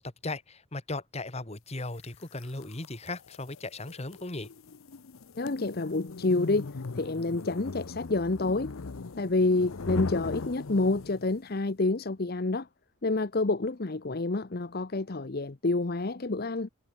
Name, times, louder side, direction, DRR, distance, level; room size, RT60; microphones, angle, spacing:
voice 1, 0.0-4.5, left 2 dB, 30° left, 1.7 m, -37 dB
sound 1, 2.0-11.4, left 3 dB, 85° left, 0.8 m, -39 dB
voice 2, 5.4-8.7 9.2-12.7 13.0-16.7, left 2 dB, 50° left, 0.8 m, -28 dB
head